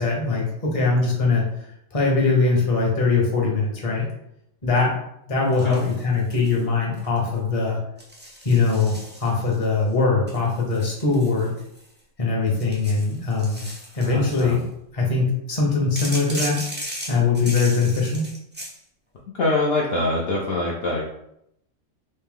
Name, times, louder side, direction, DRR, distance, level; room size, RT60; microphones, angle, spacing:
voice 1, 0.0-4.1 4.6-4.9 5.3-7.8 8.4-11.5 12.2-13.6 14.0-14.6 14.9-16.6 17.1-18.2, left 4 dB, 30° left, -2 dB, 0.9 m, -21 dB
voice 2, 5.4-5.9 14.0-14.6 19.3-21.0, left 2 dB, 60° left, -3 dB, 0.8 m, -24 dB
sound 1, 5.5-6.6 6.9-7.4 8.0-9.6 10.3-12.0 12.5-14.6 16.0-18.8, right 1 dB, 15° right, 0.4 m, -36 dB
3.2 x 2.7 x 3.5 m, 0.77 s
omnidirectional pair, 1.3 m